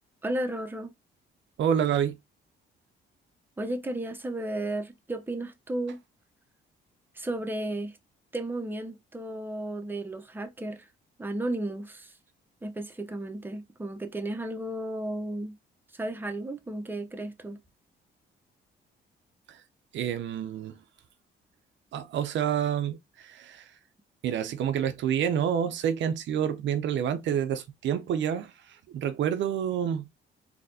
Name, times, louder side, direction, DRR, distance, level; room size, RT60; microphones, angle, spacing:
voice 1, 0.2-0.9 3.6-6.0 7.1-8.0 8.3-10.9 11.2-12.1 12.6-15.6 15.9-17.6, right 1 dB, 10° right, 0.7 m, -33 dB
voice 2, 1.6-2.2 19.5-19.6 19.9-20.8 21.9-23.8 24.2-30.1, right 9 dB, 70° right, 0.5 m, -28 dB
4.1 x 2.8 x 2.7 m
cardioid pair, 90°, 20 cm